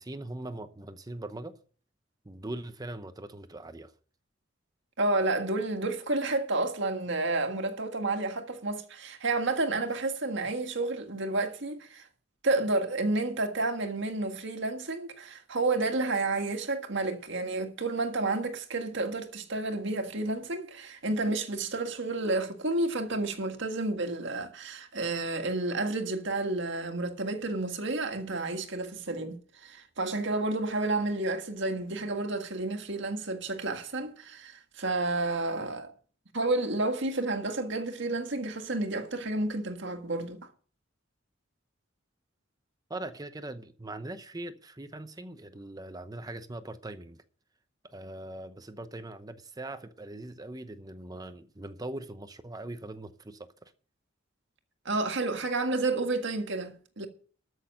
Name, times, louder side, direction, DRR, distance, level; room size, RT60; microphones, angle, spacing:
voice 1, 0.0-1.6 2.2-3.9 42.9-47.2 47.8-53.7, right 2 dB, 20° right, 0.8 m, -41 dB
voice 2, 5.0-12.1 12.4-35.9 36.3-40.4 54.9-57.1, right 2 dB, 65° right, 1.8 m, -30 dB
13.5 x 6.4 x 7.8 m
head